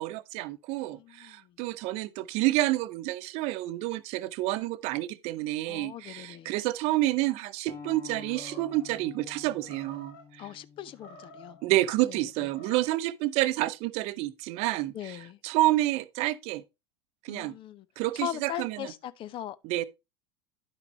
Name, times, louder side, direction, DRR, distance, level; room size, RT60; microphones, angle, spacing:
voice 1, 0.0-10.4 11.6-15.2 15.4-16.6 17.2-17.5 18.0-18.9 19.6-19.8, right 17 dB, 50° right, 0.7 m, -29 dB
voice 2, 0.9-1.5 5.7-6.5 10.4-11.6 12.0-12.2 14.9-15.4 17.3-17.9 18.1-19.6, left 11 dB, 40° left, 0.6 m, -39 dB
sound 1, 7.7-12.9, left 5 dB, 20° left, 1.8 m, -49 dB
Animal, 8.2-8.9 9.6-10.3 10.9-11.6 12.3-13.0, left 1 dB, 70° left, 2.9 m, -51 dB
11.0 x 5.9 x 3.1 m
figure-of-eight pair, 75°, 14 cm